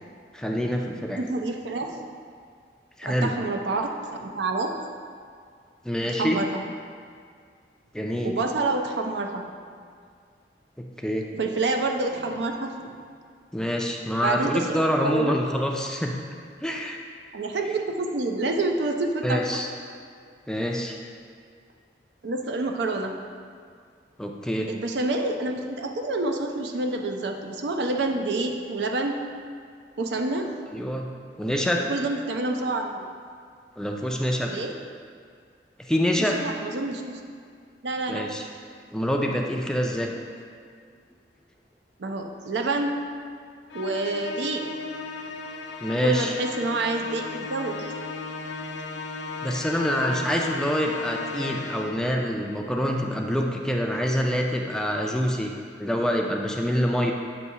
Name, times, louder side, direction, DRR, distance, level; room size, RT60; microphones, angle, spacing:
voice 1, 0.3-1.2 3.0-3.3 5.8-6.4 7.9-8.4 10.8-11.3 13.5-16.1 16.6-17.0 19.2-19.7 20.5-21.0 24.2-24.7 30.7-31.1 31.4-31.8 33.8-34.5 35.8-36.4 38.1-38.5 38.9-40.1 45.8-46.4 49.4-57.1, equal, 5° left, 1 dB, 0.4 m, -26 dB
voice 2, 1.2-2.0 3.0-4.7 6.1-6.6 8.2-9.5 11.3-12.9 14.2-15.4 17.3-19.4 22.2-23.1 24.7-29.2 30.0-30.5 31.9-33.1 34.4-34.7 36.2-37.2 37.8-38.3 42.0-42.9 43.7-44.7 46.0-47.9, right 2 dB, 75° right, 3 dB, 0.5 m, -28 dB
Musical instrument, 43.7-52.2, left 3 dB, 90° left, 0.4 m, -36 dB
7.9 x 2.7 x 5.5 m, 2.2 s
head